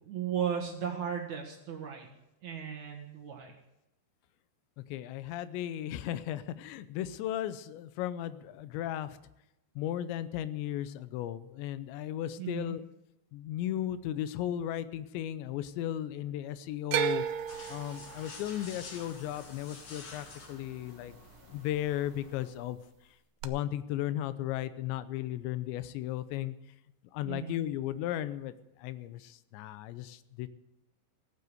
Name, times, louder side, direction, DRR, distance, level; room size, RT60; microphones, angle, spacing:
voice 1, 0.0-2.1 2.4-3.5 12.4-12.7 27.2-27.6, right 8 dB, 55° right, 0 dB, 2.4 m, -36 dB
voice 2, 4.8-9.2 9.8-12.8 13.3-17.2 17.7-21.1 21.5-22.8 23.4-26.6 27.1-28.5 28.8-30.5, left 12 dB, 85° left, 14 dB, 3.0 m, -35 dB
sound 1, 16.9-21.1 21.4-22.1 23.4-23.5, right 10 dB, 80° right, 2.6 m, -35 dB
sound 2, 17.5-22.5, left 4 dB, 50° left, 1.6 m, -50 dB
16.5 x 9.6 x 7.9 m, 0.91 s
omnidirectional pair, 5.1 m